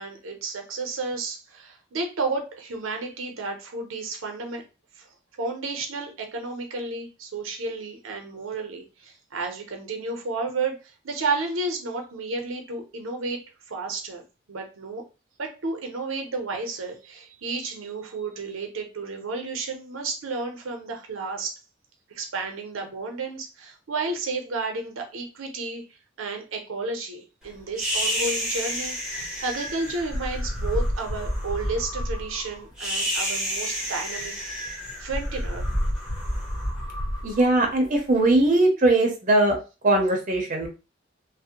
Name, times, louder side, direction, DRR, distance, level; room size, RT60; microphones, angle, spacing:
voice 1, 0.0-4.6 5.0-5.1 5.4-10.8 11.0-15.0 15.4-21.6 22.1-29.0 29.4-34.3 34.7-35.7, right 3 dB, 90° right, 3 dB, 0.6 m, -32 dB
sound 1, 27.8-38.1, equal, 5° right, 0.7 m, -29 dB
voice 2, 37.2-39.6 39.8-40.7, right 2 dB, 40° right, 2 dB, 0.6 m, -20 dB
2.5 x 2.0 x 2.8 m, 0.31 s
head